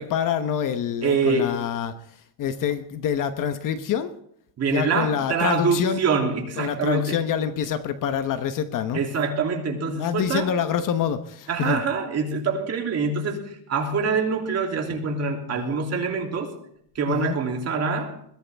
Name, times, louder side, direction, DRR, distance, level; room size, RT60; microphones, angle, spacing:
voice 1, 0.0-1.9 2.4-4.1 4.7-6.0 6.6-9.0 10.0-11.8 15.6-15.8 17.1-17.4, left 8 dB, 45° left, 10 dB, 1.1 m, -26 dB
voice 2, 1.0-1.5 4.6-7.3 8.9-10.5 11.5-16.5 16.9-18.2, right 5 dB, 35° right, 1 dB, 3.0 m, -25 dB
21.5 x 16.0 x 3.5 m, 0.69 s
cardioid pair, 165°, 44 cm